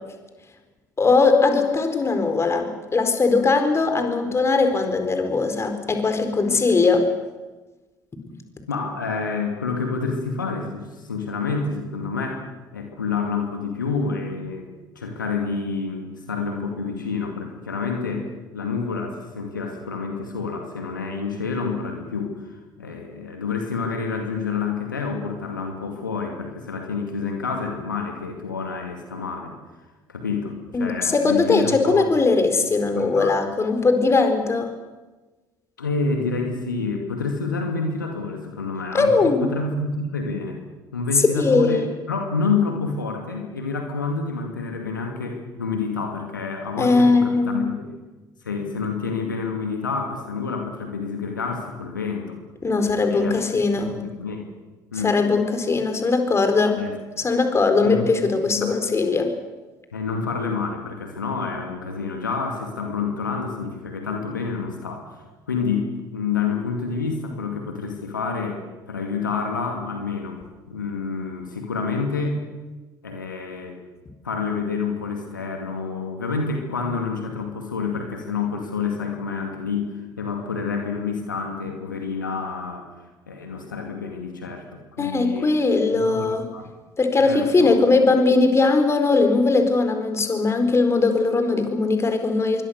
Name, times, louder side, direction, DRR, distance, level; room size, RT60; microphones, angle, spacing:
voice 1, 1.0-7.1 30.7-34.7 38.9-39.4 41.4-41.8 46.8-47.6 52.6-53.9 55.0-56.8 57.2-59.3 85.0-86.4 87.0-92.6, left 3 dB, 25° left, 7 dB, 4.5 m, -20 dB
voice 2, 8.7-12.5 12.7-14.7 15.0-29.5 30.1-32.1 32.9-33.3 35.8-40.6 40.9-48.0 48.4-52.4 53.1-53.4 53.8-54.5 54.9-55.1 56.8-57.0 57.8-58.1 58.6-58.7 59.9-68.6 68.9-70.4 70.7-72.4 73.0-73.8 74.2-82.9 83.3-85.5 85.9-86.7 87.2-87.8, left 4 dB, 80° left, 3 dB, 2.4 m, -28 dB
27.0 x 23.5 x 6.7 m, 1.2 s
figure-of-eight pair, 55°, 10 cm